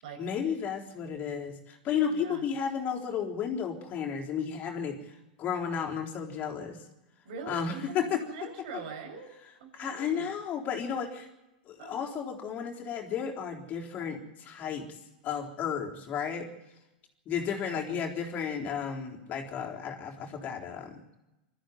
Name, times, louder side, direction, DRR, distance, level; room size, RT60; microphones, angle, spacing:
voice 1, 0.2-6.8 7.5-8.2 9.7-11.3 11.7-14.2 14.5-14.9 15.2-16.5 17.3-21.0, left 7 dB, 35° left, 2 dB, 3.8 m, -33 dB
voice 2, 2.1-2.4 7.2-9.3 9.6-10.3 11.8-12.0 17.7-18.0, right 5 dB, 65° right, 3 dB, 7.3 m, -43 dB
22.5 x 14.0 x 9.3 m, 0.98 s
hypercardioid pair, 110°, 5 cm